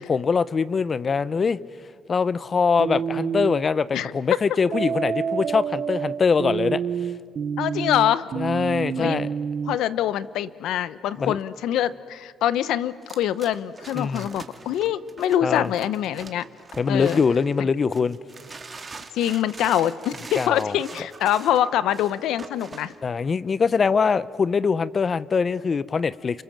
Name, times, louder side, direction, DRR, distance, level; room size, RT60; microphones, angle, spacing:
voice 1, 0.0-1.6 2.1-6.8 8.4-9.3 11.2-11.4 13.9-14.3 15.4-15.7 16.8-18.2 20.4-20.8 23.0-26.4, left 5 dB, 40° left, 17 dB, 0.8 m, -23 dB
sound 1, 2.8-3.6 4.7-9.8, right 7 dB, 55° right, 0.9 m, -28 dB
voice 2, 7.6-8.3 9.0-9.2 9.7-16.5 16.9-17.2 17.6-17.7 19.1-22.9, left 11 dB, 85° left, 16 dB, 0.8 m, -24 dB
sound 2, 13.0-17.5 17.9-23.0, right 4 dB, 30° right, 2.2 m, -42 dB
29.0 x 26.0 x 7.4 m, 2.2 s
cardioid pair, 90°, 0 cm